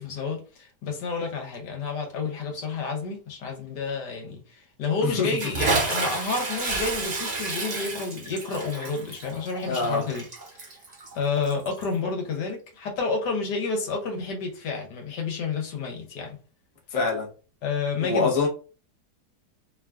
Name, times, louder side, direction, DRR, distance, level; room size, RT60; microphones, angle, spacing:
voice 1, 0.0-10.2 10.5-10.7 11.1-16.4 17.6-18.3, left 4 dB, 80° left, 1.5 m, -30 dB
Bathtub (filling or washing) / Splash splatter, 5.4-11.9, right 3 dB, 85° right, 0.3 m, -30 dB
voice 2, 9.7-10.0 16.9-17.3 18.0-18.5, left 4 dB, 35° left, 0.5 m, -24 dB
3.0 x 2.4 x 2.3 m
omnidirectional pair, 1.8 m